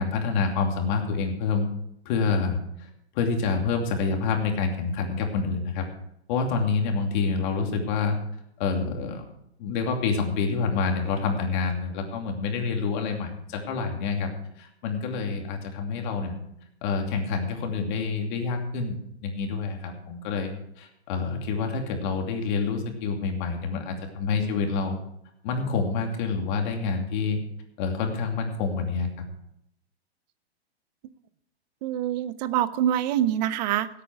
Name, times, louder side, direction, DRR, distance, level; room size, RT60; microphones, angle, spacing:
voice 1, 0.0-1.7 2.0-2.6 3.1-5.9 6.3-8.2 8.6-9.2 9.6-14.3 14.6-16.4 16.8-25.0 25.4-27.4 27.8-29.3, left 5 dB, 45° left, 3 dB, 2.7 m, -27 dB
voice 2, 31.8-33.9, right 11 dB, 40° right, 15 dB, 0.7 m, -25 dB
16.5 x 8.5 x 4.7 m, 0.74 s
hypercardioid pair, 135°, 33 cm